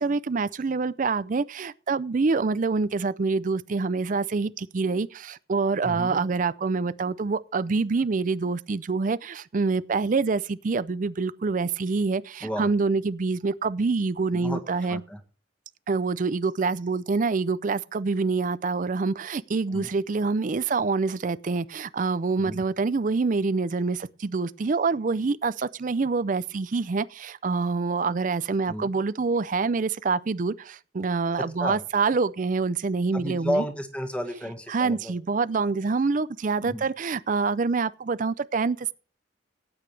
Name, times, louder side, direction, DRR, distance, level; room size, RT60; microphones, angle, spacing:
voice 1, 0.0-15.0 15.9-33.6 34.7-38.9, right 4 dB, 45° right, 0.4 m, -26 dB
voice 2, 5.8-6.2 12.4-12.7 14.3-14.6 14.9-15.2 19.7-19.9 22.4-22.6 28.7-28.9 31.6-31.8 33.1-35.1 36.6-36.8, equal, 5° left, 1.5 m, -32 dB
17.5 x 8.8 x 3.3 m
head